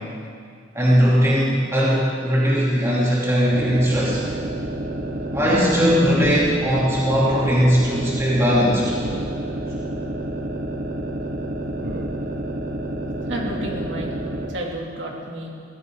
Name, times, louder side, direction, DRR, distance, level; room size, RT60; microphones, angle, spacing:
voice 1, 0.7-4.2 5.3-8.9, equal, 15° right, -7 dB, 3.0 m, -19 dB
sound 1, 3.5-14.6, right 1 dB, 50° right, 1.3 m, -29 dB
voice 2, 13.3-14.1 14.5-15.5, right 1 dB, 75° right, -1 dB, 2.7 m, -30 dB
23.0 x 16.0 x 3.8 m, 2.3 s
head